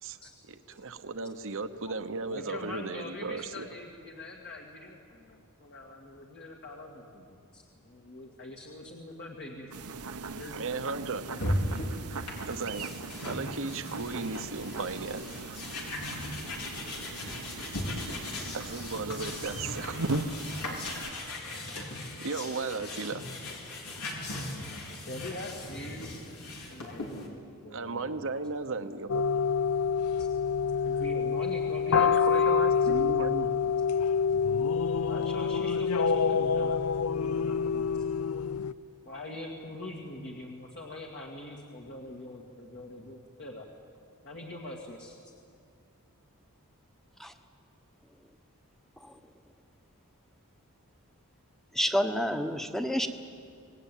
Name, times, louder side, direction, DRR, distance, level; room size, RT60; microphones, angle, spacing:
voice 1, 0.5-3.7 10.5-11.2 12.4-15.5 18.5-20.0 21.5-23.2 27.7-29.2 31.9-33.5, right 3 dB, 65° right, 9 dB, 1.0 m, -36 dB
voice 2, 2.3-9.7 10.4-11.5 24.0-24.3 25.0-26.2 26.7-27.4 27.6-28.3 30.2-30.3 30.8-32.6 34.9-37.9 39.0-43.7 44.2-45.3, left 1 dB, 50° left, -1 dB, 2.2 m, -43 dB
sound 1, 9.7-21.1, right 3 dB, 85° right, 1.1 m, -39 dB
sound 2, 11.3-27.3, left 1 dB, 90° left, 4.2 m, -38 dB
sound 3, 29.1-38.7, left 6 dB, 75° left, 0.5 m, -27 dB
voice 3, 51.7-53.1, equal, ahead, 7 dB, 1.2 m, -29 dB
25.5 x 19.0 x 9.2 m, 2.4 s
head